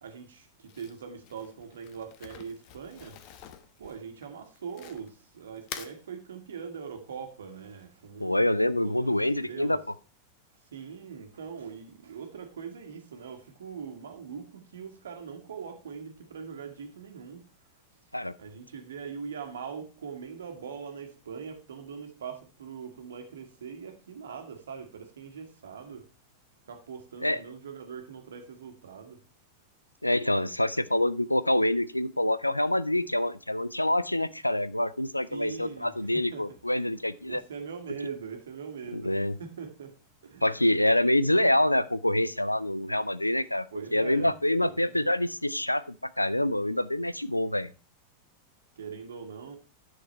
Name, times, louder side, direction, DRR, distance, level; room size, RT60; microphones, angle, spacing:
voice 1, 0.0-3.2 3.8-8.5 8.8-9.8 10.7-17.5 18.4-26.1 26.7-29.2 35.3-36.8 37.3-39.9 40.2-40.5 43.7-44.3 44.6-45.0 48.8-49.6, right 6 dB, 65° right, 1.7 m, -42 dB
Crumpling crinkling, 0.6-5.2 5.6-6.0, left 9 dB, 45° left, 1.0 m, -46 dB
voice 2, 8.2-9.8 18.1-18.3 27.2-27.4 30.0-37.4 38.9-39.3 40.4-43.7 43.9-47.7, left 1 dB, 85° left, 0.4 m, -26 dB
10.5 x 6.5 x 4.3 m
figure-of-eight pair, 90°, 0 cm